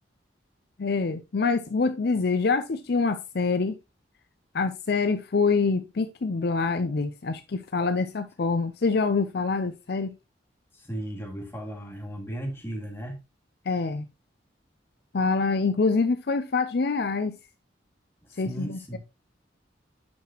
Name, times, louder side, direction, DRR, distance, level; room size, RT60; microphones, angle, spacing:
voice 1, 0.8-3.7 4.5-10.1 13.7-14.1 15.1-17.4 18.4-19.0, left 4 dB, 55° left, 0.5 m, -25 dB
voice 2, 10.7-13.2 18.3-19.0, right 1 dB, 15° left, 2.4 m, -36 dB
8.6 x 5.8 x 3.0 m
head